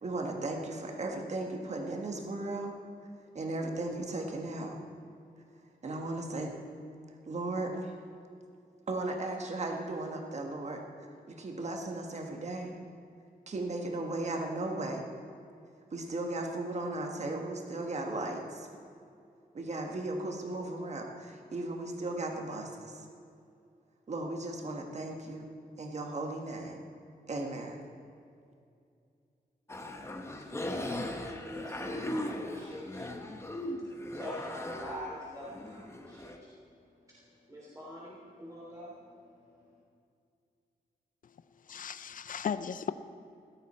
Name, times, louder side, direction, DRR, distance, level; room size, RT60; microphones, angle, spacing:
voice 1, 0.0-2.7 3.3-4.8 5.8-6.5 7.3-7.9 8.9-10.8 11.3-12.8 13.5-15.1 15.9-18.7 19.5-23.0 24.1-25.5 25.8-26.8 27.3-27.8, right 2 dB, 45° right, 2 dB, 1.6 m, -36 dB
sound 1, 29.7-36.4, left 1 dB, 15° left, 1.1 m, -39 dB
voice 2, 29.8-36.6 37.0-39.8, equal, 20° right, -7 dB, 3.3 m, -45 dB
voice 3, 41.7-42.9, left 7 dB, 60° left, 13 dB, 0.6 m, -35 dB
16.5 x 13.0 x 4.4 m, 2.4 s
wide cardioid pair, 115°, 16 cm